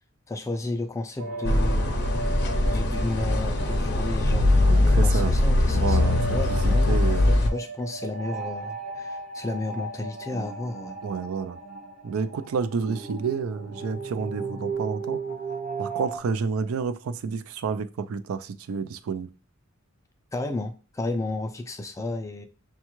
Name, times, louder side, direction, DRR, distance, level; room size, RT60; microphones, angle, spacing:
voice 1, 0.3-2.3 2.7-11.0 20.3-22.5, left 2 dB, 15° left, 0.3 m, -33 dB
sound 1, 1.2-16.2, right 4 dB, 40° right, 0.7 m, -36 dB
sound 2, 1.4-7.5, left 2 dB, 55° left, 0.6 m, -21 dB
voice 2, 4.6-5.3 5.7-7.3 11.0-11.6 12.0-15.2 15.8-19.3, right 5 dB, 80° right, 0.4 m, -30 dB
6.3 x 2.3 x 3.0 m
head